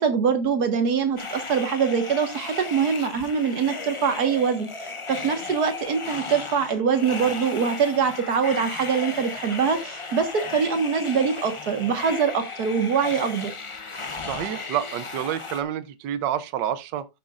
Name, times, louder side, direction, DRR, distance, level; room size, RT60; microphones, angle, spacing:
voice 1, 0.0-13.5, right 6 dB, 65° right, 2.0 m, -24 dB
sound 1, 1.2-15.6, left 4 dB, 40° left, 0.4 m, -35 dB
voice 2, 14.2-17.1, right 10 dB, 85° right, 1.4 m, -28 dB
12.5 x 7.4 x 2.5 m
omnidirectional pair, 1.9 m